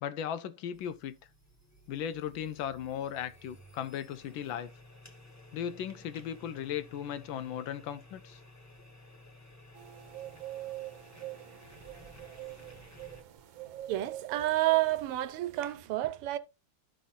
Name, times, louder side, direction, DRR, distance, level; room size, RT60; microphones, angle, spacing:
voice 1, 0.0-1.2 1.9-4.7 5.5-8.4, left 9 dB, 75° left, 1.3 m, -37 dB
sound 1, 0.7-13.2, left 2 dB, 15° left, 0.6 m, -55 dB
sound 2, 9.7-15.8, right 14 dB, 65° right, 1.6 m, -45 dB
voice 2, 13.9-16.4, right 16 dB, 90° right, 1.7 m, -29 dB
13.5 x 5.6 x 2.6 m
omnidirectional pair, 2.4 m